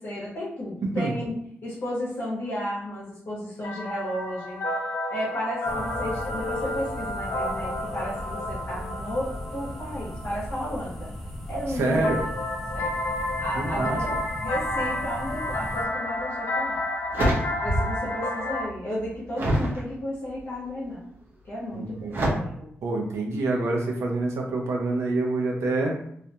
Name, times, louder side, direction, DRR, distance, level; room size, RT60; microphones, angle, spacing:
voice 1, 0.0-4.6 5.1-11.1 11.5-12.0 12.7-12.9 13.2-14.1 14.4-16.8 17.6-21.0 21.4-22.7, equal, 55° left, -6 dB, 0.8 m, -33 dB
voice 2, 0.8-1.1 11.7-12.2 13.6-14.2 18.0-18.1 21.7-22.1 22.8-26.0, right 2 dB, 85° right, 0 dB, 0.6 m, -26 dB
sound 1, 3.6-11.1 12.0-18.7, left 1 dB, 80° left, 0.4 m, -31 dB
sound 2, 5.6-15.9, equal, ahead, 0.5 m, -37 dB
sound 3, 16.1-16.3 16.7-18.1 18.4-19.8 20.4-20.8 22.1-22.3, right 1 dB, 55° right, 0.8 m, -27 dB
2.5 x 2.2 x 2.7 m, 0.68 s
wide cardioid pair, 125°, 5 cm